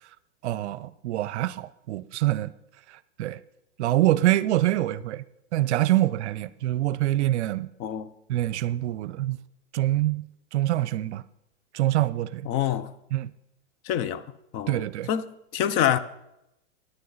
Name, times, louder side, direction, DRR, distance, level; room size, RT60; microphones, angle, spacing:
voice 1, 0.4-2.5 2.9-3.4 3.8-5.2 5.5-7.7 8.3-9.4 9.7-10.3 10.5-11.2 11.7-12.5 13.1-13.3 14.7-15.1, right 15 dB, 70° right, 0.7 m, -25 dB
voice 2, 12.5-12.9 13.8-14.2 14.5-16.0, left 10 dB, 40° left, 0.8 m, -26 dB
16.5 x 10.0 x 4.0 m
hypercardioid pair, 125°, 36 cm